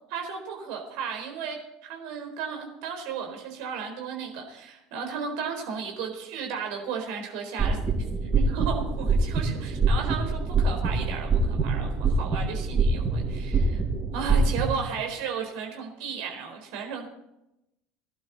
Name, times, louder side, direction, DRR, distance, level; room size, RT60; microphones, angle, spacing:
voice 1, 0.1-1.6 1.8-13.8 14.1-17.1, right 6 dB, 60° right, 3 dB, 4.1 m, -34 dB
sound 1, 7.6-14.6, right 3 dB, 30° right, 7.4 m, -25 dB
19.5 x 11.5 x 4.2 m, 0.88 s
figure-of-eight pair, 70°, 0 cm